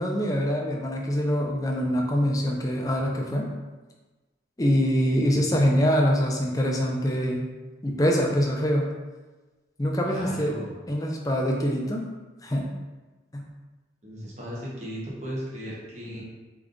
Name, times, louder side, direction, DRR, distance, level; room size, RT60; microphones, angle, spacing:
voice 1, 0.0-3.5 4.6-7.5 7.8-8.9 9.8-10.5 10.9-12.1 12.4-12.7 13.3-13.4, equal, 20° left, 0 dB, 0.6 m, -24 dB
voice 2, 10.1-10.7 14.0-16.2, equal, 40° right, -6 dB, 1.3 m, -36 dB
3.9 x 3.5 x 3.8 m, 1.2 s
head